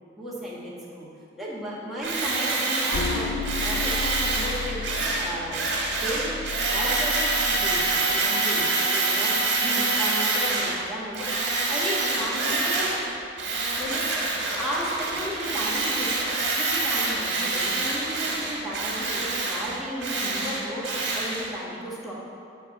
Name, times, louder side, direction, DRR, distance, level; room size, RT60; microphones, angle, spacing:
voice 1, 0.2-1.1 1.4-6.4 6.7-9.3 9.6-13.0 13.8-14.1 14.5-16.1 16.6-22.1, equal, ahead, -8 dB, 1.5 m, -34 dB
Tools, 2.0-10.8 11.1-13.1 13.4-21.5, right 3 dB, 70° right, 1.7 m, -26 dB
sound 1, 2.9-8.0, left 4 dB, 55° left, 0.5 m, -33 dB
10.0 x 3.6 x 7.1 m, 2.6 s
head